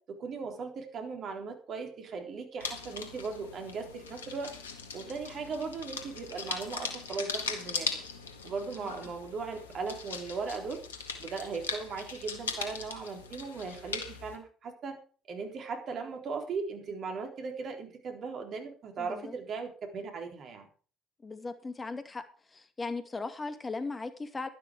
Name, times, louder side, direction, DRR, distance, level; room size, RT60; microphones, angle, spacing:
voice 1, 0.1-4.5 4.9-7.9 8.4-10.8 11.2-15.0 15.3-20.7, right 4 dB, 50° right, 4 dB, 3.8 m, -38 dB
sound 1, 2.6-14.4, left 5 dB, 85° left, 1.7 m, -40 dB
voice 2, 19.0-19.3 21.2-22.2 22.5-24.5, left 3 dB, 25° left, 9 dB, 2.2 m, -38 dB
12.0 x 11.5 x 5.0 m, 0.39 s
figure-of-eight pair, 55°, 0 cm